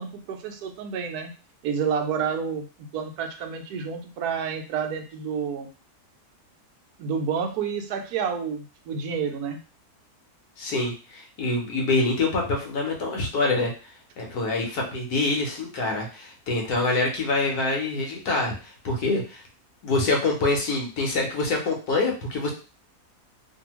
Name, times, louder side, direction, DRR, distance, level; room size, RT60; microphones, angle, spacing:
voice 1, 0.0-1.3 1.6-2.6 2.9-5.7 7.0-9.6, right 6 dB, 75° right, 4 dB, 1.1 m, -29 dB
voice 2, 10.6-13.7 14.2-19.4 19.8-22.5, left 2 dB, 75° left, 0 dB, 1.2 m, -25 dB
2.7 x 2.7 x 2.9 m, 0.36 s
omnidirectional pair, 1.7 m